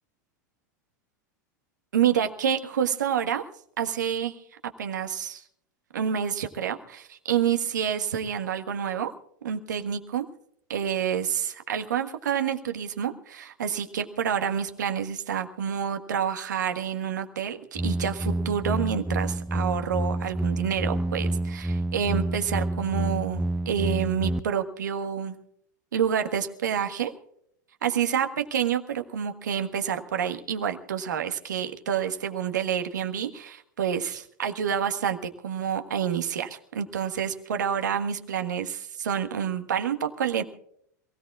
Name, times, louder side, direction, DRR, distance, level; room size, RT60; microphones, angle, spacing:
voice 1, 1.9-3.4 3.8-4.3 4.8-5.4 5.9-9.1 9.4-10.2 10.7-25.3 25.9-27.1 27.8-35.2 35.4-40.4, right 8 dB, 80° right, 7 dB, 1.5 m, -28 dB
sound 1, 17.8-24.4, right 1 dB, 5° right, 0.5 m, -28 dB
27.5 x 17.0 x 2.4 m, 0.69 s
hypercardioid pair, 90°, 10 cm